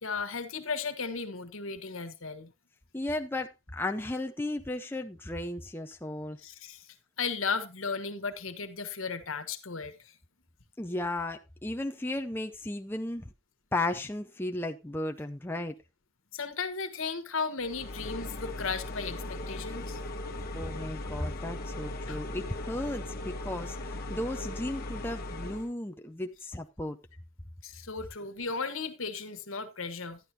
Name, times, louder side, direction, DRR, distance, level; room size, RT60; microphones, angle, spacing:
voice 1, 0.0-2.5 6.4-6.8 7.2-9.9 16.3-20.0 22.1-22.2 27.6-30.2, left 5 dB, 75° left, 1.4 m, -35 dB
voice 2, 2.9-6.4 10.8-13.3 13.7-15.7 20.5-27.0, left 1 dB, 10° left, 0.5 m, -35 dB
sound 1, 17.6-25.7, left 1 dB, 45° left, 1.3 m, -38 dB
12.0 x 11.0 x 2.8 m
head